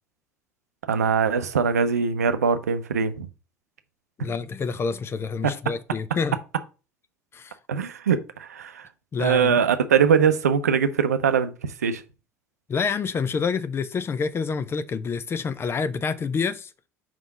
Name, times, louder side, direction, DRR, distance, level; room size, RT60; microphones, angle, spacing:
voice 1, 0.9-3.3 5.4-5.5 7.7-8.9 9.2-12.0, right 6 dB, 80° right, 0.6 m, -22 dB
voice 2, 4.2-6.4 7.3-7.6 9.1-9.6 12.7-16.7, left 5 dB, 30° left, 0.6 m, -27 dB
4.8 x 3.7 x 5.3 m
figure-of-eight pair, 65°, 8 cm